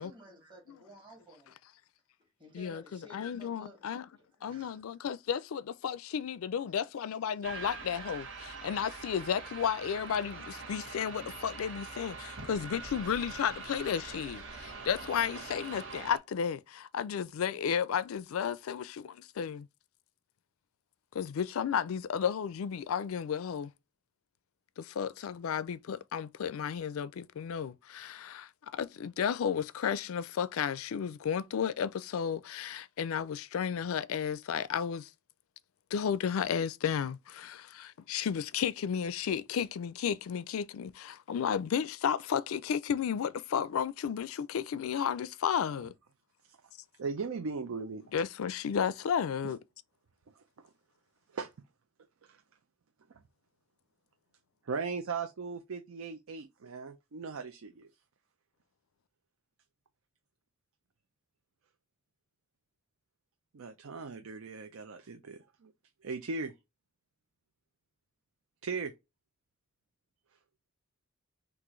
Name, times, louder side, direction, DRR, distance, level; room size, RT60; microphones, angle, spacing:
voice 1, 0.0-1.6 2.4-5.0 6.6-6.7 7.3-7.5 8.4-8.7, equal, 25° right, 2.2 m, -56 dB
voice 2, 3.1-4.0 4.4-8.3 8.6-19.7 21.1-23.7 24.8-35.1 35.9-45.9 48.1-49.6, left 7 dB, 85° left, 0.4 m, -33 dB
sound 1, 7.4-16.2, right 4 dB, 65° right, 1.3 m, -44 dB
voice 3, 47.0-48.0 49.4-49.5 51.3-51.5 52.2-52.4 54.7-57.9 63.5-65.7 66.0-66.5 68.6-68.9, right 4 dB, 85° right, 0.5 m, -38 dB
6.0 x 2.5 x 3.1 m
head